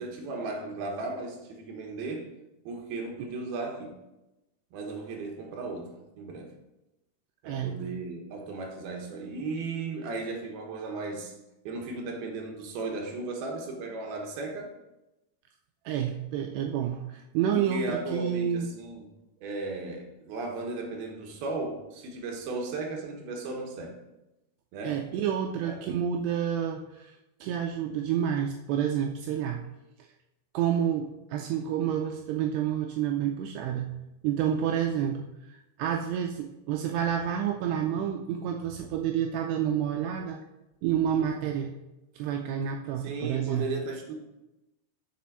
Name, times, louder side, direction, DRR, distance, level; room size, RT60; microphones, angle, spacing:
voice 1, 0.0-2.3 2.7-4.0 4.7-6.5 7.4-11.3 11.6-14.7 17.5-19.0 19.4-24.0 24.7-25.0 25.6-25.9 43.0-44.2, right 3 dB, 65° right, 1 dB, 2.8 m, -36 dB
voice 2, 15.9-18.7 24.8-27.1 27.4-29.6 30.5-33.9 34.2-40.4 40.8-41.7 42.2-43.7, right 9 dB, 90° right, 3 dB, 2.4 m, -29 dB
7.4 x 6.9 x 5.7 m, 0.97 s
omnidirectional pair, 5.4 m